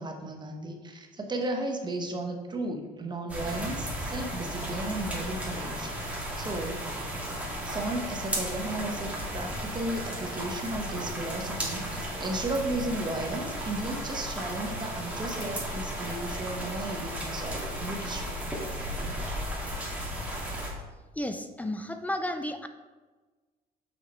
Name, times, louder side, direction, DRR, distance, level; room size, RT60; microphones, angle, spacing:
voice 1, 0.0-6.8 7.6-18.4, right 2 dB, 25° right, 2 dB, 1.1 m, -34 dB
sound 1, 3.3-20.7, equal, 10° right, 2.2 m, -34 dB
voice 2, 21.2-22.7, left 1 dB, 10° left, 7 dB, 0.5 m, -32 dB
6.2 x 5.7 x 4.4 m, 1.3 s
cardioid pair, 110°, 17 cm